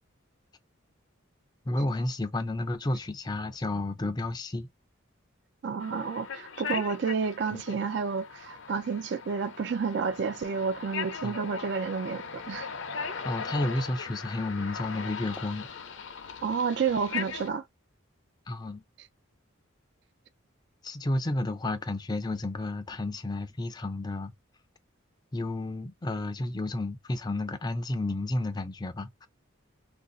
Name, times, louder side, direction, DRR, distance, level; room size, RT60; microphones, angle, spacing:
voice 1, 1.7-4.7 7.5-7.6 11.2-11.4 13.2-15.7 18.5-18.8 20.8-24.3 25.3-29.3, left 2 dB, 20° left, 0.4 m, -31 dB
voice 2, 5.6-12.7 16.4-17.6, right 5 dB, 55° right, 0.4 m, -30 dB
sound 1, 5.8-17.5, left 5 dB, 60° left, 0.6 m, -39 dB
2.5 x 2.4 x 3.8 m
head